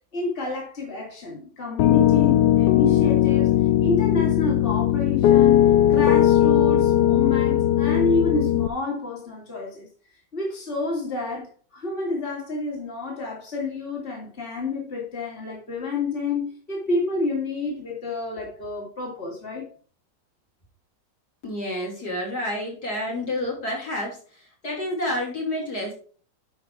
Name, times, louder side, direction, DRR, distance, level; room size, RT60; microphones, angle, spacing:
voice 1, 0.1-9.9 10.3-19.7, left 3 dB, 30° left, 3.2 m, -29 dB
Piano, 1.8-8.7, left 12 dB, 75° left, 1.2 m, -18 dB
voice 2, 21.4-25.9, left 1 dB, 55° left, 3.7 m, -29 dB
11.5 x 4.7 x 4.8 m
omnidirectional pair, 1.9 m